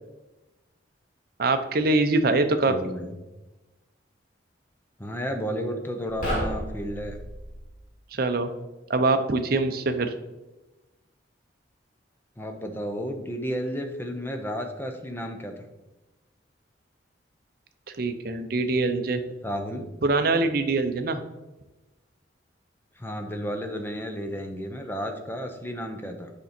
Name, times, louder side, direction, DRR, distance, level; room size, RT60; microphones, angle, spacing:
voice 1, 1.4-2.7 8.1-8.5 8.9-10.1 18.0-19.2 20.0-21.2, right 3 dB, 50° right, 8 dB, 0.6 m, -23 dB
voice 2, 2.7-3.2 5.0-7.2 12.4-15.7 19.4-19.9 23.0-26.3, equal, 10° left, 4 dB, 0.7 m, -32 dB
sound 1, 6.1-7.7, equal, 45° left, 2.2 m, -31 dB
6.7 x 5.2 x 4.3 m, 1.1 s
head